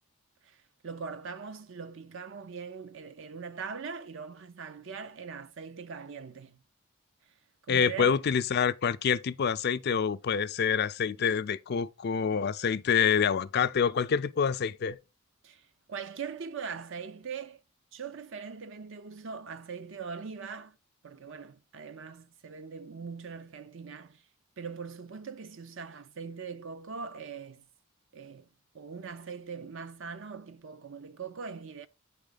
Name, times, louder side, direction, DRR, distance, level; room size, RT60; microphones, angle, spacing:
voice 1, 0.4-6.6 7.6-8.2 15.4-17.6 17.9-20.8 21.0-24.2 24.6-27.6 28.1-28.5 28.7-31.9, right 5 dB, 60° right, 0.6 m, -41 dB
voice 2, 7.7-15.0, left 7 dB, 50° left, 0.4 m, -27 dB
9.0 x 3.6 x 3.8 m
head